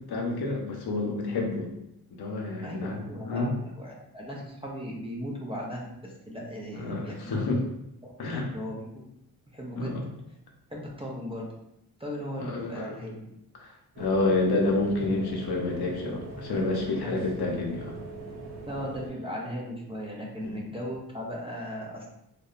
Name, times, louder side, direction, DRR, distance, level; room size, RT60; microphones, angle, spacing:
voice 1, 0.0-1.7 2.1-3.5 6.7-7.6 8.2-8.5 9.8-10.0 12.4-12.9 13.6-18.0 20.4-20.6, left 2 dB, 75° left, 0 dB, 0.6 m, -29 dB
voice 2, 2.6-7.4 8.0-9.1 9.5-10.0 10.7-11.5 12.0-13.3 17.0-17.3 18.7-22.1, equal, 15° right, -3 dB, 0.4 m, -37 dB
sound 1, 14.0-19.1, right 2 dB, 80° right, 0.7 m, -41 dB
2.7 x 2.1 x 2.3 m, 0.82 s
wide cardioid pair, 115°, 39 cm